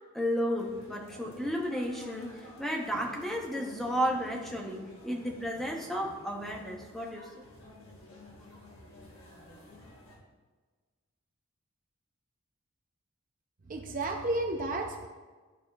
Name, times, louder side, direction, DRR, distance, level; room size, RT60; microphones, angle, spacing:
voice 1, 0.1-7.4, equal, ahead, -1 dB, 0.7 m, -33 dB
sound 1, 0.6-10.2, left 1 dB, 65° left, 1.5 m, -51 dB
voice 2, 13.7-15.1, right 2 dB, 40° right, 2 dB, 0.5 m, -32 dB
11.5 x 4.3 x 2.3 m, 1.4 s
head